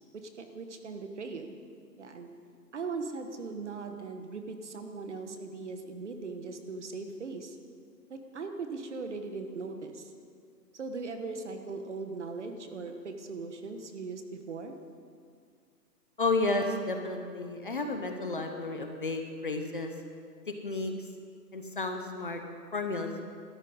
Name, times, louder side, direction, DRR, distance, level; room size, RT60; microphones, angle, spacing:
voice 1, 0.1-1.5 2.0-2.3 2.7-7.6 8.1-10.1 10.7-14.7, right 4 dB, 45° right, 6 dB, 1.4 m, -39 dB
voice 2, 16.2-19.9 20.6-20.9 21.5-22.4 22.7-23.1, left 3 dB, 30° left, 5 dB, 0.9 m, -32 dB
13.0 x 10.0 x 9.6 m, 2.2 s
hypercardioid pair, 175°, 49 cm